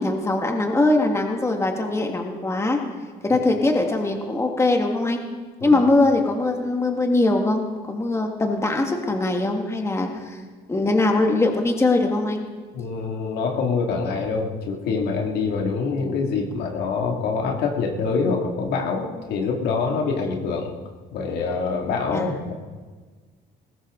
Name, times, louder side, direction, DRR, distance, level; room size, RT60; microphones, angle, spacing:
voice 1, 0.0-2.8 3.2-5.2 5.6-10.4 10.7-12.5 22.1-22.2, left 2 dB, 15° left, 3 dB, 1.7 m, -21 dB
voice 2, 12.7-20.7 21.1-22.5, left 4 dB, 80° left, 1 dB, 2.3 m, -25 dB
20.0 x 16.0 x 3.8 m, 1.4 s
cardioid pair, 110°, 17 cm